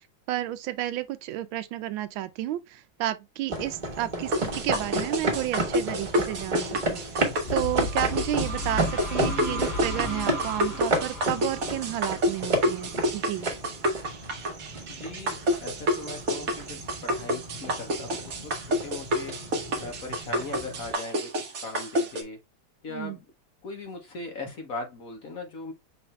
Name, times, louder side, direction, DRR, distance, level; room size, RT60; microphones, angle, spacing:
voice 1, 0.3-7.2 7.5-13.5 22.9-23.2, right 14 dB, 80° right, 1.3 m, -31 dB
sound 1, 3.5-20.9, right 1 dB, 30° right, 1.1 m, -33 dB
sound 2, 4.3-22.2, equal, 50° right, 1.2 m, -29 dB
sound 3, 7.5-13.1, left 1 dB, 30° left, 1.8 m, -35 dB
voice 2, 14.9-19.3 19.8-21.3 21.6-22.4 22.8-23.2 23.6-25.7, left 3 dB, 55° left, 1.1 m, -39 dB
5.8 x 2.6 x 3.2 m
omnidirectional pair, 2.2 m